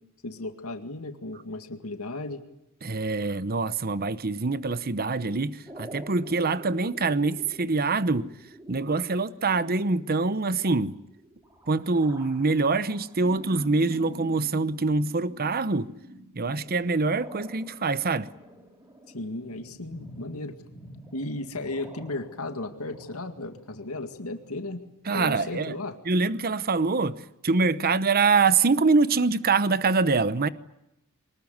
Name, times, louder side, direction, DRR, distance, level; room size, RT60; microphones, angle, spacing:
voice 1, 0.2-2.4 19.1-20.6 21.1-26.0, left 2 dB, 85° left, 2.1 m, -35 dB
voice 2, 2.8-8.3 8.7-10.9 11.7-15.9 16.4-18.3 25.1-25.8 26.1-30.5, right 3 dB, 45° right, 0.9 m, -24 dB
sound 1, 5.7-24.9, right 1 dB, 15° right, 3.6 m, -47 dB
24.0 x 20.5 x 9.5 m
head